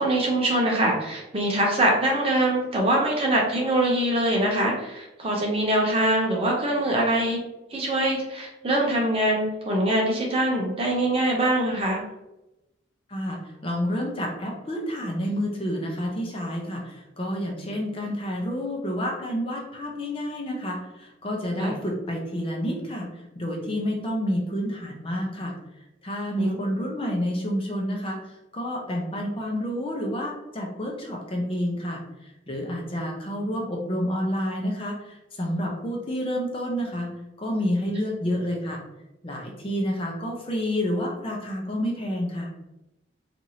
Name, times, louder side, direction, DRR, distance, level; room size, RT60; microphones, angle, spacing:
voice 1, 0.0-7.4 7.7-12.0 21.6-21.7 26.4-26.6, right 1 dB, 30° right, -1 dB, 0.8 m, -23 dB
voice 2, 13.1-23.1 23.4-25.5 26.0-37.1 37.4-38.8 39.2-42.5, equal, 30° left, -1 dB, 0.7 m, -29 dB
4.5 x 2.6 x 2.8 m, 0.93 s
head